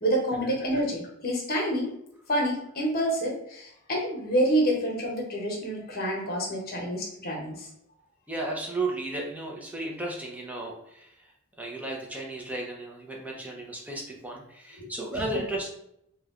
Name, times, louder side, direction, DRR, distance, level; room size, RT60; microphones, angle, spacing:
voice 1, 0.0-1.9 2.3-7.7 14.8-14.9, right 1 dB, 45° left, -1 dB, 1.0 m, -28 dB
voice 2, 8.3-11.1 11.6-15.7, right 2 dB, 5° right, -1 dB, 0.6 m, -34 dB
3.1 x 2.2 x 3.6 m, 0.75 s
head